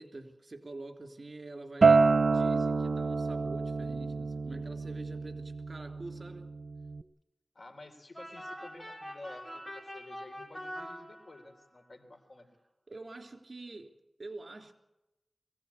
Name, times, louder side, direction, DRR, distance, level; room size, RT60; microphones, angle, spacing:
voice 1, 0.0-6.5 12.9-13.9 14.2-14.7, right 2 dB, 55° right, 5 dB, 3.3 m, -46 dB
Acoustic guitar, 1.8-7.0, right 4 dB, 90° right, 0.7 m, -27 dB
voice 2, 7.5-12.5, left 2 dB, 65° left, 6 dB, 3.7 m, -51 dB
sound 1, 8.1-11.7, equal, 20° left, 6.4 m, -44 dB
23.0 x 17.0 x 8.5 m, 0.95 s
wide cardioid pair, 65°, 0 cm